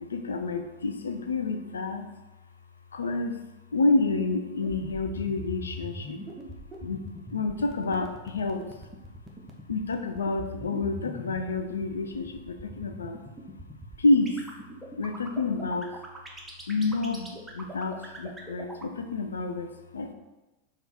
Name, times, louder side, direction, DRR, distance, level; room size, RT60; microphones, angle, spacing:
voice 1, 0.1-2.0 2.9-3.4 3.7-6.2 6.8-7.0 7.3-8.6 9.7-13.2 14.0-14.4 15.0-15.9 16.7-17.3 17.5-20.1, left 3 dB, 70° left, 6 dB, 0.3 m, -28 dB
sound 1, 4.6-18.9, equal, 10° right, 0.6 m, -41 dB
3.5 x 2.3 x 4.2 m, 1.1 s
figure-of-eight pair, 90°, 0 cm